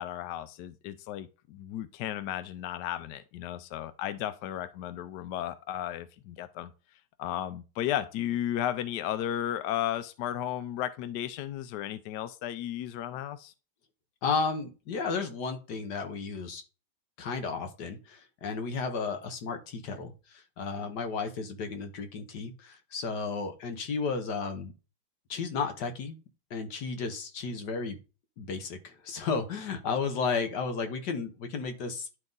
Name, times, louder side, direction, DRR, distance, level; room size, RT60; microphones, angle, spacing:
voice 1, 0.0-6.7 7.2-13.5, left 11 dB, 75° left, 1.0 m, -34 dB
voice 2, 14.2-16.6 17.2-24.7 25.3-26.1 26.5-28.0 28.4-32.1, left 5 dB, 60° left, 1.4 m, -33 dB
10.5 x 3.6 x 3.9 m
omnidirectional pair, 2.3 m